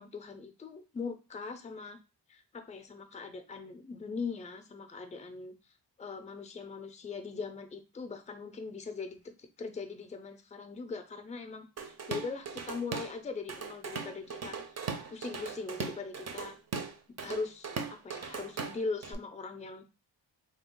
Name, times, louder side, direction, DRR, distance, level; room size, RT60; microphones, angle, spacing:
voice 1, 0.0-2.0 2.3-5.5 6.0-14.6 15.1-16.6 17.2-19.8, left 4 dB, 15° left, 7 dB, 0.4 m, -40 dB
Drum kit / Drum, 11.8-13.2 13.5-19.1, right 5 dB, 35° right, 0.5 m, -39 dB
3.4 x 2.0 x 3.6 m, 0.30 s
cardioid pair, 90°, 45 cm